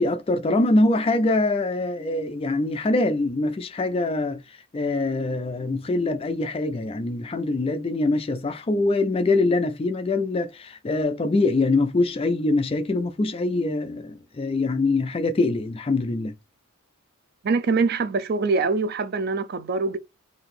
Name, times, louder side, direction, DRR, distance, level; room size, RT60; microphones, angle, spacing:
voice 1, 0.0-16.3, left 2 dB, 25° left, 0.3 m, -24 dB
voice 2, 17.4-20.0, right 4 dB, 45° right, 0.4 m, -24 dB
3.9 x 2.6 x 3.2 m
head